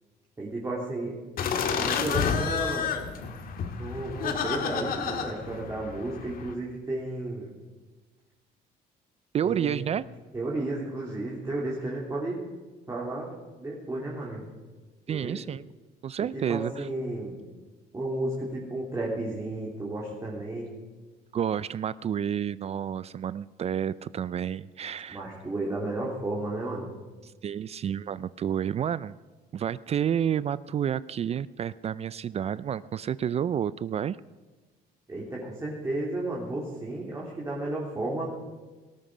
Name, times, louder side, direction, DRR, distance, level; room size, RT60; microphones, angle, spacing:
voice 1, 0.4-1.2 1.7-2.9 3.8-7.5 9.4-9.9 10.3-12.4 12.9-13.3 13.6-14.5 15.1-15.4 16.3-17.4 17.9-20.8 25.1-26.9 35.1-38.3, right 2 dB, 20° right, -4 dB, 3.2 m, -33 dB
sound 1, 1.4-6.5, left 6 dB, 60° left, 1.8 m, -30 dB
voice 2, 9.3-10.1 15.1-15.6 16.0-16.9 21.3-25.2 27.2-29.1 29.5-34.2, right 9 dB, 40° right, 18 dB, 0.4 m, -30 dB
18.5 x 13.0 x 5.0 m, 1.3 s
cardioid pair, 110°, 17 cm